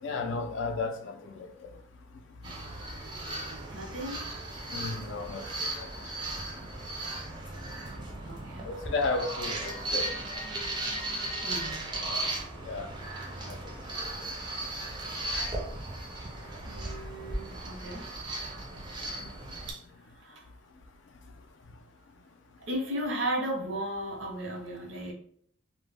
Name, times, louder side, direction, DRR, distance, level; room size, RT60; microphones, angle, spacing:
voice 1, 0.0-1.5 4.7-5.9 8.6-10.1 12.6-12.9 13.5-13.6 19.0-19.3, left 3 dB, 65° left, 0.3 m, -33 dB
sound 1, 2.4-19.7, right 2 dB, 20° right, 0.4 m, -36 dB
voice 2, 3.7-4.2 8.2-8.7 11.4-11.8 16.7-18.0 19.7-19.8 20.2-20.4 22.7-25.1, right 1 dB, 65° right, 0.7 m, -35 dB
2.1 x 2.1 x 3.2 m
head